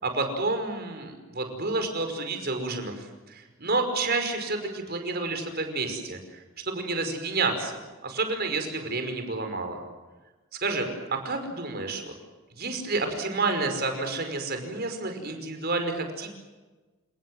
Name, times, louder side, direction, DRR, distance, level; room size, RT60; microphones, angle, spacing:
voice 1, 0.0-9.8 10.6-12.0 12.6-16.3, right 3 dB, 50° right, 6 dB, 5.3 m, -30 dB
29.5 x 19.5 x 7.7 m, 1.2 s
head